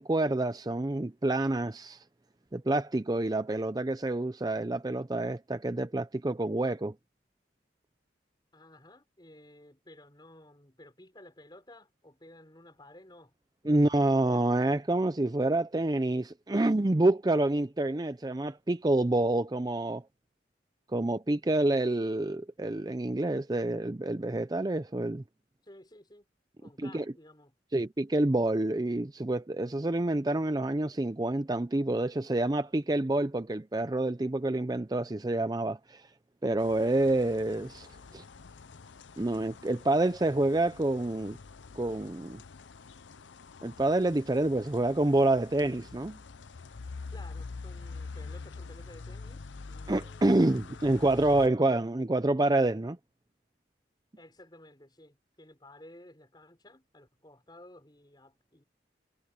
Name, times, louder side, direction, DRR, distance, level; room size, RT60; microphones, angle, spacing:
voice 1, 0.0-2.0 2.5-6.9 13.7-20.0 20.9-25.2 26.8-27.0 27.7-36.1 36.4-38.2 39.2-41.4 41.7-42.4 43.6-46.2 49.9-53.0, right 2 dB, 20° right, 0.5 m, -28 dB
voice 2, 8.5-13.3 13.6-14.6 25.6-26.3 26.6-27.5 47.1-51.6 54.2-58.6, left 1 dB, 25° left, 5.5 m, -54 dB
sound 1, 36.6-51.5, left 4 dB, 90° left, 0.7 m, -46 dB
head